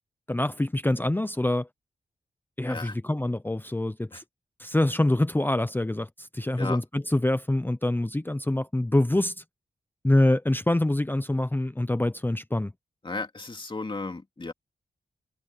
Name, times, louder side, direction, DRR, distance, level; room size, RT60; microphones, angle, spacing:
voice 1, 0.3-1.7 2.6-4.2 4.6-9.3 10.0-12.7, left 1 dB, 10° left, 0.8 m, -25 dB
voice 2, 2.6-3.0 4.1-4.2 6.6-6.8 13.0-14.5, left 3 dB, 30° left, 2.6 m, -34 dB
wide cardioid pair, 105°, 17 cm